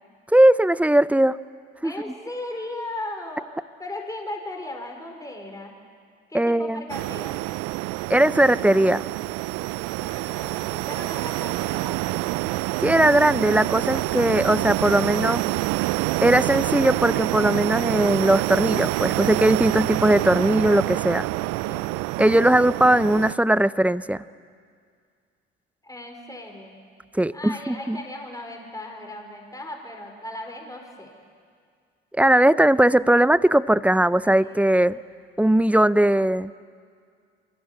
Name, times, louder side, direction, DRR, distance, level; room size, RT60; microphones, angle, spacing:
voice 1, 0.3-1.4 1.8-1.9 6.3-6.9 8.1-9.0 12.8-15.4 16.2-21.3 22.2-24.2 27.1-28.0 32.2-35.0 35.4-36.5, right 1 dB, 5° right, 17 dB, 0.6 m, -19 dB
voice 2, 1.8-3.5 3.8-5.7 6.3-7.4 10.0-12.4 21.7-21.9 25.8-26.8 27.3-31.1 34.2-34.6, left 1 dB, 10° left, 2 dB, 5.0 m, -37 dB
sound 1, 6.9-23.3, right 21 dB, 70° right, 0.6 m, -27 dB
27.5 x 24.5 x 8.5 m, 2.1 s
hypercardioid pair, 65°, 31 cm